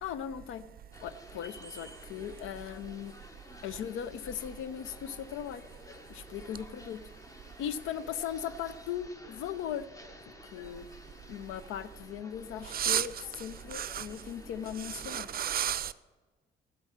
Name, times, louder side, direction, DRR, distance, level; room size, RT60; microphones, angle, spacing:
voice 1, 0.0-0.7 1.0-3.1 3.6-5.6 6.1-7.0 7.6-9.9 10.3-10.9 11.3-15.3, left 9 dB, 90° left, 15 dB, 0.6 m, -38 dB
sound 1, 0.9-15.4, left 1 dB, 15° left, 1.1 m, -53 dB
voice 2, 12.7-13.1 13.7-14.1 14.9-15.9, right 10 dB, 50° right, 16 dB, 0.5 m, -31 dB
12.5 x 5.5 x 7.3 m, 1.4 s
cardioid pair, 90°, 20 cm